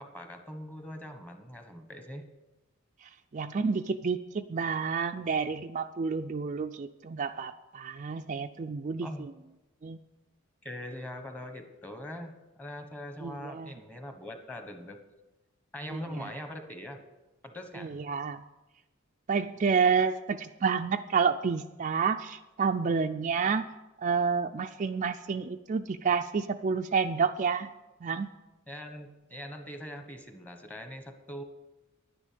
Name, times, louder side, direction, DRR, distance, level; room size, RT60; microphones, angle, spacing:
voice 1, 0.0-2.2 9.0-9.3 10.6-15.0 15.7-17.0 17.4-17.9 28.7-31.4, equal, 10° left, 6 dB, 1.2 m, -42 dB
voice 2, 3.3-9.3 9.8-10.0 13.2-13.7 15.9-16.0 17.8-18.4 19.3-23.7 24.0-27.7 28.0-28.3, right 5 dB, 35° right, 7 dB, 0.4 m, -29 dB
11.0 x 9.8 x 6.8 m, 1.1 s
head